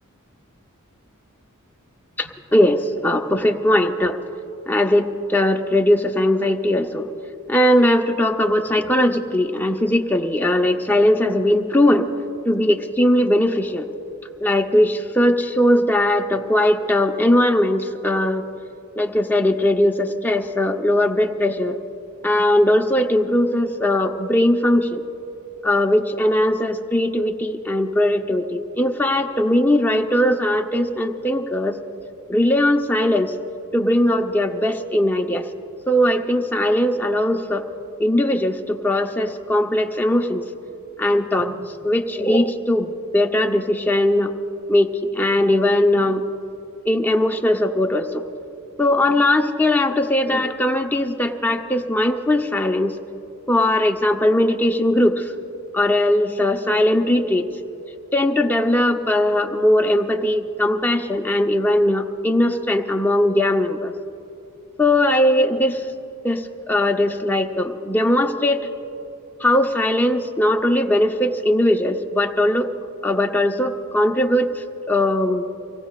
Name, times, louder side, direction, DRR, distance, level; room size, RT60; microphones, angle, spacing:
voice 1, 2.2-4.2 4.7-7.1 7.5-12.1 12.4-13.9 14.4-18.4 19.0-21.8 22.2-25.0 25.6-31.8 32.3-33.3 33.7-35.5 35.9-37.7 38.0-40.4 41.0-44.3 44.7-46.3 46.9-48.2 48.8-53.0 53.5-55.3 55.7-57.5 58.1-63.9 64.8-65.8 66.2-68.7 69.4-72.7 73.0-75.4, left 1 dB, 10° left, 3 dB, 0.7 m, -19 dB
25.5 x 18.0 x 2.4 m, 2.8 s
head